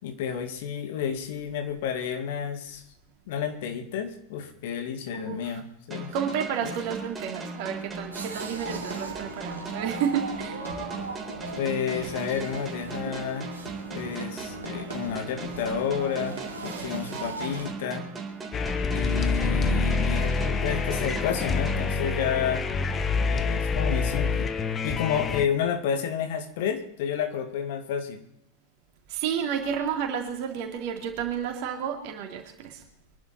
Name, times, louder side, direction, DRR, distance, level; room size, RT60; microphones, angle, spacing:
voice 1, 0.0-2.8 3.3-6.1 6.6-6.8 11.6-13.5 13.9-16.4 16.6-18.0 18.9-22.6 23.2-24.5 24.8-28.2, left 8 dB, 50° left, 7 dB, 2.2 m, -30 dB
voice 2, 5.1-5.6 6.1-10.6 29.1-32.8, right 8 dB, 45° right, 3 dB, 3.5 m, -31 dB
sound 1, 5.9-22.5, right 3 dB, 15° right, 3.8 m, -38 dB
sound 2, 8.1-17.7, right 4 dB, 75° right, 2.9 m, -39 dB
sound 3, 18.5-25.5, left 4 dB, 20° left, 1.2 m, -26 dB
25.0 x 11.5 x 4.4 m, 0.77 s
figure-of-eight pair, 90°, 0 cm